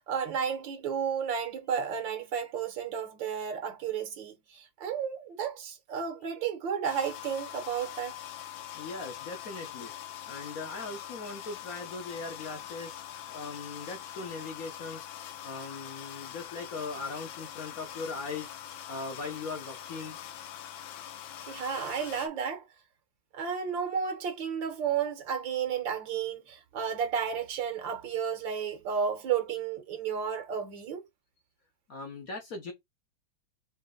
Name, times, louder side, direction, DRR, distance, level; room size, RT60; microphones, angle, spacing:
voice 1, 0.1-8.2 21.4-22.7 23.3-31.0, right 7 dB, 70° right, 1.7 m, -32 dB
sound 1, 6.8-22.3, left 11 dB, 85° left, 1.5 m, -43 dB
voice 2, 8.7-9.9 10.3-13.0 13.3-15.1 15.4-18.5 18.9-20.2 31.9-32.7, left 3 dB, 55° left, 1.2 m, -39 dB
4.2 x 3.2 x 3.7 m
omnidirectional pair, 2.2 m